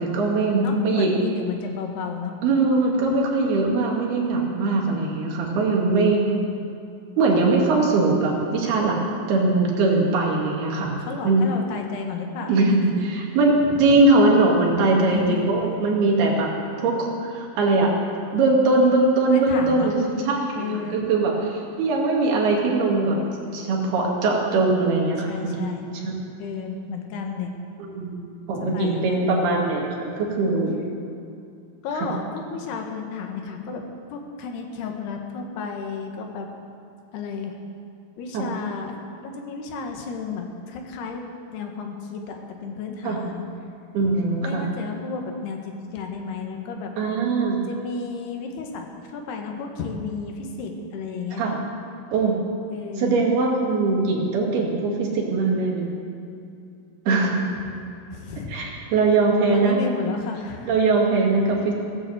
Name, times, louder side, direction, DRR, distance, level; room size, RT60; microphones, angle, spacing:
voice 1, 0.0-1.2 2.4-6.3 7.2-9.0 9.3-10.9 11.2-11.4 12.5-16.5 16.8-17.9 18.3-20.0 20.3-23.2 23.5-25.7 26.0-26.1 27.8-28.2 28.5-30.8 32.0-32.1 38.3-38.4 43.0-43.2 43.9-44.6 47.0-47.6 51.4-51.6 52.1-52.4 53.0-55.9 57.1-57.4 58.5-59.8 60.7-61.7, right 3 dB, 75° right, -1 dB, 4.1 m, -21 dB
voice 2, 0.6-2.3 6.2-6.7 11.0-13.0 13.7-13.8 15.0-15.5 19.3-19.9 20.6-21.0 25.3-25.9 26.4-27.5 28.6-29.4 31.8-33.8 34.1-36.5 37.1-37.6 38.2-39.0 39.2-41.2 41.5-43.5 44.4-46.9 47.7-51.4 52.7-53.2 57.1-57.3 58.1-58.5 59.5-60.7, left 5 dB, 85° left, 3 dB, 3.6 m, -32 dB
16.0 x 10.5 x 7.8 m, 2.6 s
omnidirectional pair, 4.5 m